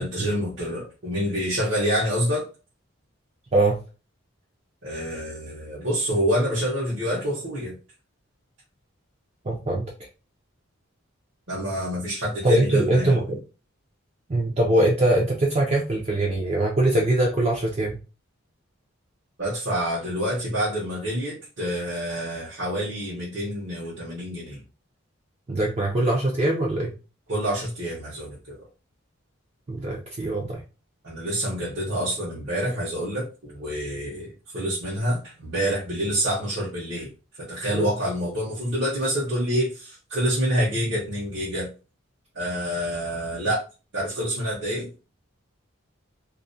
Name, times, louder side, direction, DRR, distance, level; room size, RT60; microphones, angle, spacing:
voice 1, 0.0-2.5 4.8-7.7 11.5-13.1 19.4-24.6 27.3-28.5 31.0-37.1 37.5-41.7 42.3-43.6 43.9-44.9, equal, 55° right, -7 dB, 0.8 m, -27 dB
voice 2, 9.4-9.8 12.4-13.4 14.3-18.0 25.5-26.9 29.7-30.6 37.7-37.9, right 1 dB, 30° right, -2 dB, 0.4 m, -22 dB
2.3 x 2.0 x 2.6 m, 0.32 s
head